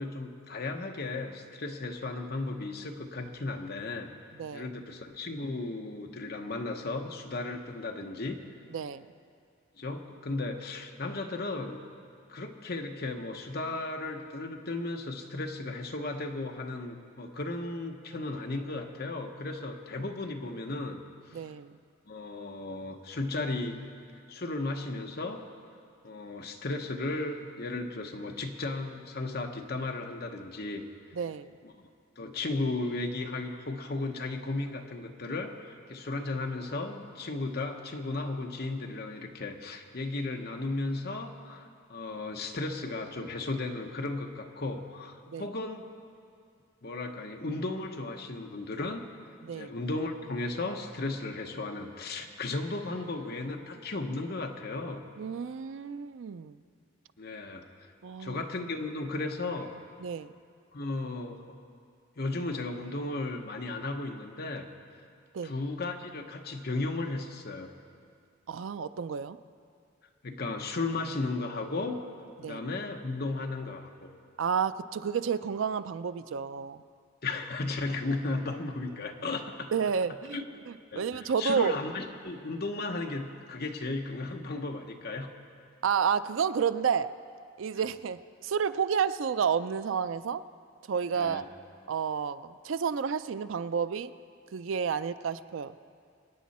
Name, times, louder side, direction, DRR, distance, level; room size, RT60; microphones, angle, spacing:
voice 1, 0.0-4.1 4.5-8.4 9.8-11.8 12.3-21.0 21.3-21.4 22.1-23.8 24.3-25.5 26.0-30.8 31.6-31.7 32.2-45.9 46.8-49.0 49.5-55.0 57.2-57.7 58.2-59.7 60.7-61.5 62.2-64.7 65.4-67.7 70.2-72.0 72.4-73.9 77.2-79.7 80.3-80.6 80.9-81.0 81.4-85.3 91.1-91.4, left 2 dB, 50° left, 4 dB, 1.0 m, -35 dB
voice 2, 4.4-4.7 8.7-9.0 21.3-21.7 31.1-31.5 45.3-45.5 49.4-49.7 55.2-56.6 58.0-58.4 60.0-60.3 65.3-65.5 68.5-69.4 72.4-72.6 74.4-76.8 79.7-81.7 85.8-87.1 87.6-90.4 90.9-91.4 91.9-94.1 94.5-95.7, right 6 dB, 75° right, 13 dB, 0.4 m, -30 dB
24.0 x 9.3 x 4.2 m, 2.3 s
head